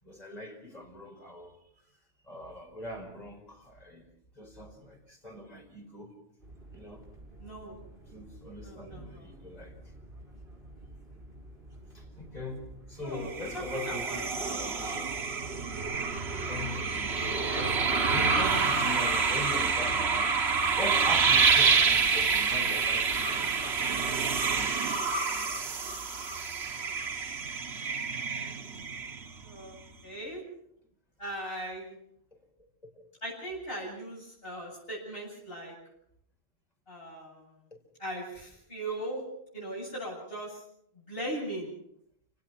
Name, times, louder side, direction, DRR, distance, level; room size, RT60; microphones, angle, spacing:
voice 1, 0.0-1.6 2.3-4.1 4.4-6.1 6.7-7.1 8.1-9.8 11.9-15.1 16.5-17.5 18.1-20.3 20.8-24.0 33.0-33.1, left 1 dB, 40° left, 1 dB, 5.3 m, -41 dB
sound 1, 6.4-24.7, right 1 dB, 55° right, 6.0 m, -50 dB
voice 2, 7.4-7.8 8.6-9.3 13.0-13.3 13.7-14.7 17.2-17.7 19.4-19.5 29.4-30.4 31.2-32.0 33.2-35.7 36.9-37.5 38.0-39.2 39.5-40.6 40.9-41.7, right 1 dB, 65° left, -5 dB, 8.4 m, -39 dB
sound 2, 13.2-29.5, right 5 dB, 85° right, 1.5 m, -28 dB
29.5 x 17.5 x 6.0 m, 0.72 s
omnidirectional pair, 1.1 m